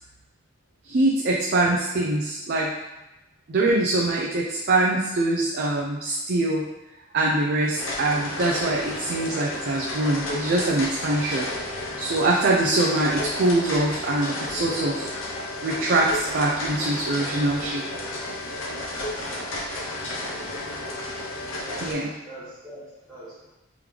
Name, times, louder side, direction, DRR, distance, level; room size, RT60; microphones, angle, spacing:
voice 1, 0.9-2.7 3.5-6.7 7.1-11.5 12.0-15.1 15.6-17.8 21.8-22.1, right 2 dB, 55° right, -3 dB, 0.5 m, -23 dB
sound 1, 7.8-21.9, left 1 dB, 85° left, 0.8 m, -32 dB
voice 2, 20.3-20.7 21.7-23.6, right 1 dB, 5° left, -13 dB, 1.1 m, -44 dB
3.7 x 3.4 x 3.1 m, 1.0 s
head